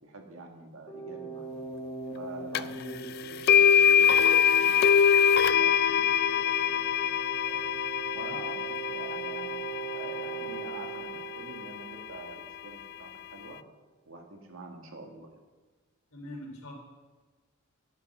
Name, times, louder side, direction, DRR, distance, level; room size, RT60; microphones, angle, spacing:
voice 1, 0.0-1.6 2.2-7.2 7.4-7.7 8.1-9.5 9.9-11.1 11.3-13.6 14.1-15.3, right 2 dB, 80° right, 2 dB, 1.8 m, -46 dB
sound 1, 0.9-12.5, right 6 dB, 15° left, 1.3 m, -41 dB
sound 2, 2.5-2.6 3.5-11.5, left 8 dB, 50° left, 0.3 m, -24 dB
voice 2, 16.1-16.7, left 1 dB, 80° left, 1 dB, 3.0 m, -43 dB
9.8 x 8.4 x 6.0 m, 1.3 s
head